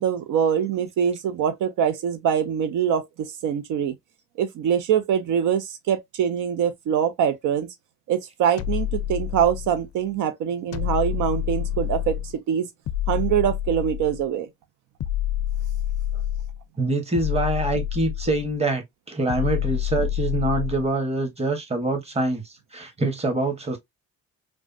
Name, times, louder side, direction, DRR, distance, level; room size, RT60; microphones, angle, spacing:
voice 1, 0.0-3.9 4.4-7.7 8.1-12.7 13.1-14.5, right 8 dB, 80° right, 0.5 m, -24 dB
sound 1, 8.6-9.9 10.7-12.4 12.9-14.3 15.0-16.6 17.1-18.5 19.3-20.9, left 11 dB, 55° left, 0.4 m, -28 dB
voice 2, 16.8-23.8, right 2 dB, 20° right, 1.0 m, -25 dB
3.3 x 2.2 x 2.5 m
cardioid pair, 90°, 30 cm